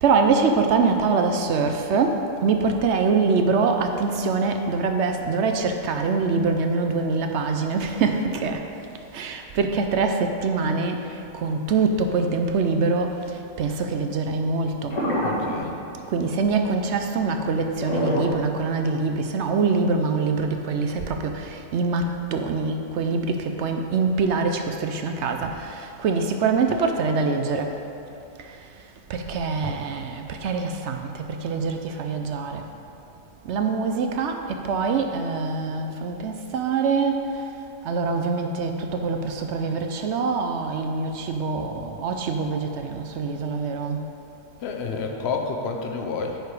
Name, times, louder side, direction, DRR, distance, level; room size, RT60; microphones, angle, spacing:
voice 1, 0.0-8.7 9.1-15.0 16.1-27.7 28.4-28.6 29.1-32.6 33.4-37.3 37.8-44.0, right 4 dB, 65° right, 5 dB, 0.8 m, -24 dB
sound 1, 14.9-15.7 17.8-18.9 19.5-19.6, equal, 75° left, 1.9 m, -26 dB
voice 2, 15.2-15.8 44.6-46.4, left 4 dB, 55° left, 3 dB, 1.0 m, -29 dB
9.1 x 4.8 x 4.8 m, 2.8 s
omnidirectional pair, 1.4 m